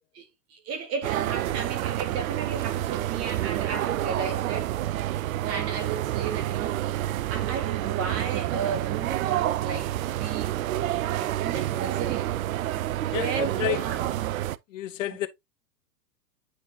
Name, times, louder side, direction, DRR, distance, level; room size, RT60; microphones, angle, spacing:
voice 1, 0.1-4.8 5.4-6.8 7.3-12.3 13.1-14.2, right 6 dB, 30° right, 1.7 m, -34 dB
sound 1, 1.0-14.6, right 14 dB, 60° right, 0.5 m, -28 dB
voice 2, 13.1-13.8 14.7-15.3, left 14 dB, 50° left, 0.7 m, -30 dB
8.9 x 3.9 x 2.7 m
figure-of-eight pair, 100°, 49 cm